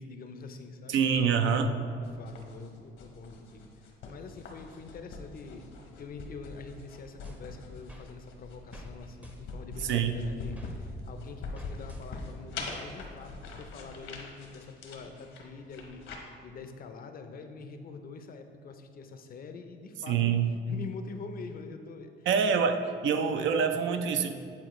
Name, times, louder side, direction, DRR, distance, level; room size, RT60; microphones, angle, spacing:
voice 1, 0.0-1.0 1.8-20.3 20.7-22.6, left 4 dB, 45° left, 7 dB, 0.5 m, -45 dB
voice 2, 0.9-1.8 9.8-10.1 20.1-20.5 22.3-22.8 23.0-24.3, right 6 dB, 70° right, 7 dB, 0.5 m, -25 dB
sound 1, 2.0-16.2, left 3 dB, 75° left, 1.0 m, -43 dB
sound 2, 7.2-8.1 8.7-8.9 9.2-10.7 11.5-12.4, equal, 5° right, 0.6 m, -52 dB
8.5 x 4.2 x 3.1 m, 2.2 s
cardioid pair, 110°, 20 cm